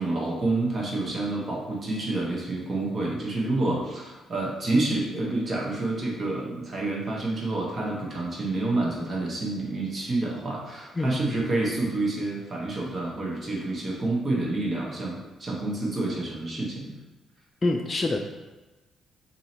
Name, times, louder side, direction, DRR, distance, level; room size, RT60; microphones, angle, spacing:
voice 1, 0.0-17.0, right 2 dB, 35° right, -3 dB, 1.0 m, -28 dB
voice 2, 11.0-11.4 17.6-18.2, left 2 dB, 25° left, 2 dB, 0.3 m, -26 dB
2.7 x 2.7 x 4.1 m, 1.1 s
cardioid pair, 90°, 0 cm